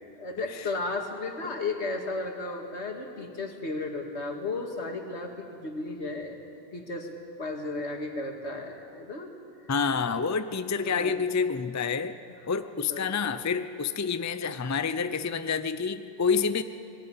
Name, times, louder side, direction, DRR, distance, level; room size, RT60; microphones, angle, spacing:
voice 1, 0.0-6.4 6.7-7.1 7.4-9.3 10.8-11.1 12.9-13.2, left 3 dB, 80° left, 3 dB, 2.4 m, -34 dB
voice 2, 9.7-12.2 12.5-16.6, left 5 dB, 20° left, 11 dB, 0.5 m, -28 dB
21.0 x 16.0 x 9.8 m, 2.5 s
omnidirectional pair, 1.1 m